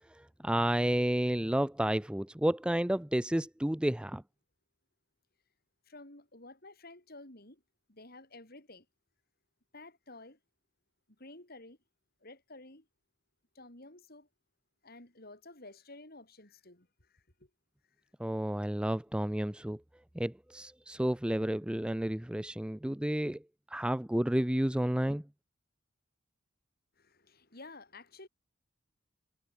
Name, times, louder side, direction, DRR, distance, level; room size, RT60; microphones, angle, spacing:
voice 1, 0.1-4.2 18.2-19.8 20.2-23.4 23.7-25.2, right 1 dB, 5° right, 0.4 m, -31 dB
voice 2, 5.9-7.6 7.9-8.9 9.7-10.4 11.2-11.8 12.2-12.9 13.5-14.3 14.8-17.5 27.0-28.3, left 2 dB, 50° left, 6.0 m, -52 dB
head